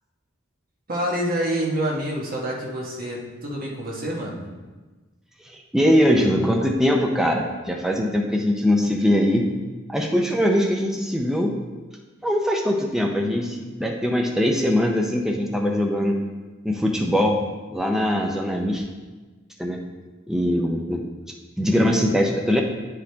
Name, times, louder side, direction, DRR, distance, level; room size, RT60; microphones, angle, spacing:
voice 1, 0.9-4.4, right 1 dB, 45° right, -3 dB, 1.5 m, -27 dB
voice 2, 5.5-9.5 9.9-11.5 12.2-16.2 16.6-17.4 17.7-18.8 19.6-19.8 20.3-21.0 21.6-22.6, equal, ahead, 0 dB, 0.5 m, -21 dB
10.0 x 4.9 x 3.5 m, 1.3 s
head